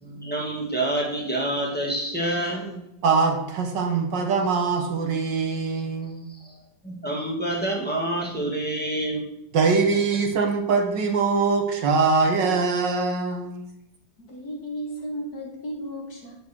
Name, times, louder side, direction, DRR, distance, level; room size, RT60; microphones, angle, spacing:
voice 1, 0.0-2.8 6.4-6.5 6.8-9.2 10.1-10.2, right 1 dB, 5° left, -2 dB, 2.1 m, -27 dB
voice 2, 3.0-6.3 9.5-13.6, right 4 dB, 70° right, 5 dB, 1.8 m, -23 dB
voice 3, 14.2-16.4, equal, 55° left, 1 dB, 2.1 m, -34 dB
10.5 x 5.0 x 6.1 m, 0.81 s
omnidirectional pair, 2.1 m